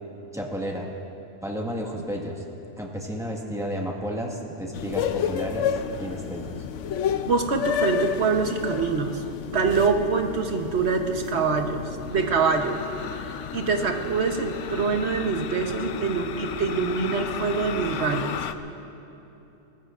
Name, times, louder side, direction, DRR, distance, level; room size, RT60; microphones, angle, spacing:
voice 1, 0.3-0.9 1.4-2.4 2.8-6.6, equal, ahead, -2 dB, 1.6 m, -32 dB
sound 1, 4.7-18.5, left 8 dB, 75° left, 0.9 m, -32 dB
voice 2, 7.3-12.8 13.2-18.5, right 5 dB, 60° right, 4 dB, 1.3 m, -25 dB
23.5 x 19.0 x 2.5 m, 2.9 s
omnidirectional pair, 1.3 m